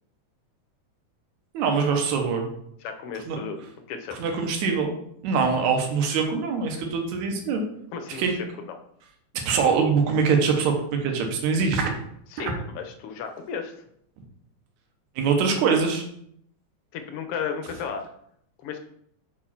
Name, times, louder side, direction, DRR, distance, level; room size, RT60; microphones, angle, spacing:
voice 1, 1.5-2.5 3.3-3.4 4.2-4.9 5.2-7.6 8.1-8.3 9.5-11.9 12.4-12.5 15.2-16.0, right 5 dB, 75° right, 3 dB, 2.4 m, -23 dB
voice 2, 2.8-3.6 3.9-4.2 7.9-8.8 12.3-13.7 16.9-18.1 18.6-18.8, left 6 dB, 80° left, 6 dB, 1.3 m, -34 dB
5.6 x 4.9 x 5.7 m, 0.70 s
omnidirectional pair, 3.5 m